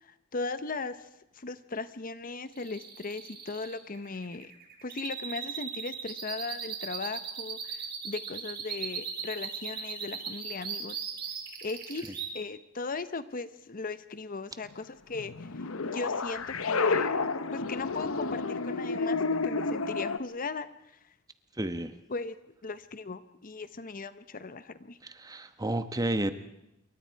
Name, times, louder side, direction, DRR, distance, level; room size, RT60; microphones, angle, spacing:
voice 1, 0.0-1.1 1.3-4.5 4.8-11.0 11.6-15.5 15.8-17.2 17.5-19.2 19.4-20.7 22.1-22.3 22.6-25.0, left 3 dB, 45° left, 13 dB, 0.9 m, -38 dB
sound 1, 2.5-12.3, right 7 dB, 50° right, 4.1 m, -38 dB
sound 2, 15.1-20.2, left 4 dB, 85° left, 1.0 m, -30 dB
voice 2, 21.6-21.9 25.0-26.3, right 1 dB, 20° right, 10 dB, 1.1 m, -31 dB
27.0 x 23.5 x 4.7 m, 0.86 s
head